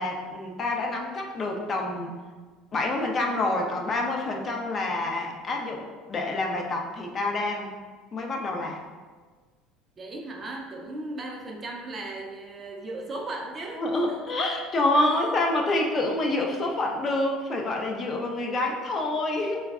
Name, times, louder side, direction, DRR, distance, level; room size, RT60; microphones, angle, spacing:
voice 1, 0.0-2.2 2.7-7.7 8.1-8.8 13.8-19.6, left 2 dB, 35° left, 1 dB, 0.4 m, -27 dB
voice 2, 10.0-14.4 14.9-15.3, right 2 dB, 30° right, 0 dB, 0.4 m, -37 dB
3.3 x 2.0 x 2.3 m, 1.4 s
supercardioid pair, 105°, 0 cm